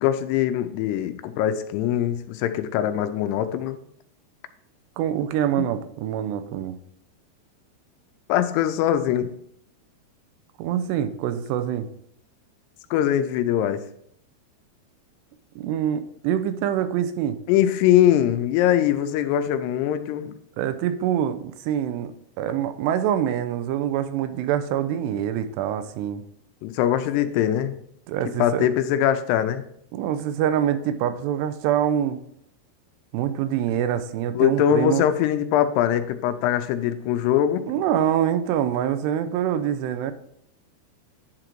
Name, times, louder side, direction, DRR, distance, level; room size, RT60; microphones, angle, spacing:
voice 1, 0.0-3.8 8.3-9.3 12.9-13.8 17.5-20.3 26.6-27.8 28.4-29.6 34.4-37.6, left 11 dB, 85° left, 9 dB, 2.7 m, -22 dB
voice 2, 5.0-6.8 10.6-11.9 15.6-17.4 20.6-26.2 28.1-28.7 29.9-32.2 33.1-35.0 37.7-40.1, right 10 dB, 90° right, 10 dB, 2.8 m, -25 dB
10.5 x 3.8 x 4.5 m, 0.70 s
omnidirectional pair, 4.8 m